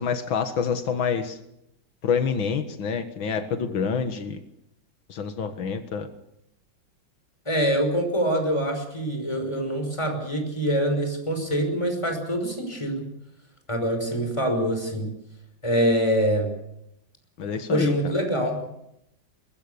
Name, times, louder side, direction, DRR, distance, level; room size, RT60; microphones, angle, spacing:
voice 1, 0.0-1.4 2.0-4.4 5.1-6.1 17.4-17.9, left 6 dB, 85° left, 8 dB, 2.3 m, -27 dB
voice 2, 7.5-13.1 13.7-15.1 15.6-16.5 17.7-18.6, equal, 15° left, 5 dB, 5.7 m, -25 dB
22.5 x 22.0 x 7.0 m, 0.79 s
omnidirectional pair, 2.1 m